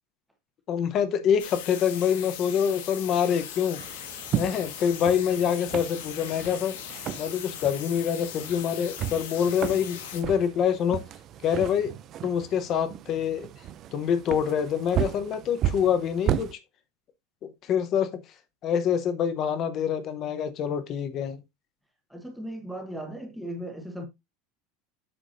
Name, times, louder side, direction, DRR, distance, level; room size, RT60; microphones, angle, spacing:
voice 1, 0.7-3.8 4.3-6.8 7.2-11.0 11.4-11.9 12.2-13.5 13.9-16.6 17.4-18.2 18.6-21.4, left 8 dB, 30° left, 0.9 m, -26 dB
sound 1, 1.4-10.2, left 9 dB, 75° left, 1.6 m, -40 dB
sound 2, 3.8-16.5, right 11 dB, 30° right, 0.4 m, -34 dB
voice 2, 22.1-24.0, right 1 dB, ahead, 1.2 m, -37 dB
7.8 x 5.9 x 2.6 m
supercardioid pair, 175°, 0 cm